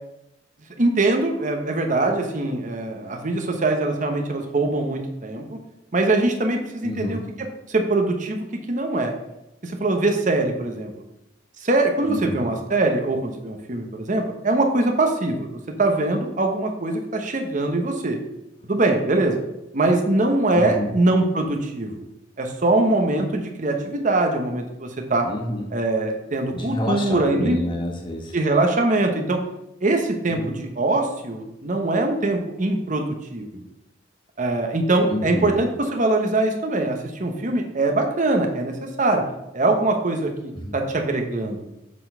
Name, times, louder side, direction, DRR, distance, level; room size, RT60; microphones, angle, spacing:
voice 1, 0.8-5.6 5.9-9.1 9.6-10.9 11.6-18.2 18.6-19.4 19.7-22.0 22.4-25.3 25.7-27.6 28.3-29.4 29.8-33.6 34.4-39.2 39.5-40.3 40.7-41.6, right 2 dB, 45° right, 3 dB, 1.0 m, -22 dB
voice 2, 6.8-7.2 12.1-12.4 20.5-20.9 25.2-25.7 26.5-28.4 30.4-30.5 35.1-35.5 40.6-40.7, equal, 25° left, 0 dB, 1.4 m, -28 dB
7.3 x 4.0 x 5.5 m, 0.90 s
head